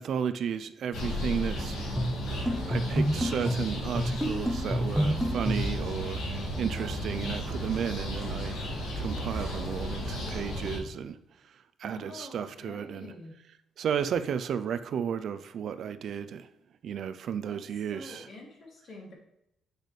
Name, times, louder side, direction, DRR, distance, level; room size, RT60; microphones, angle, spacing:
voice 1, 0.0-1.8 2.7-6.2 6.6-8.7 9.0-11.2 11.8-13.1 13.8-16.5 16.8-18.3, right 8 dB, 65° right, 0.6 m, -33 dB
sound 1, 0.9-10.8, equal, 80° left, 2.4 m, -34 dB
sound 2, 2.0-5.8, equal, ahead, 1.1 m, -29 dB
voice 2, 6.9-7.6 11.8-13.3 17.5-17.6 17.9-19.1, left 2 dB, 55° left, 2.9 m, -47 dB
8.1 x 6.5 x 3.3 m
cardioid pair, 90°, 0 cm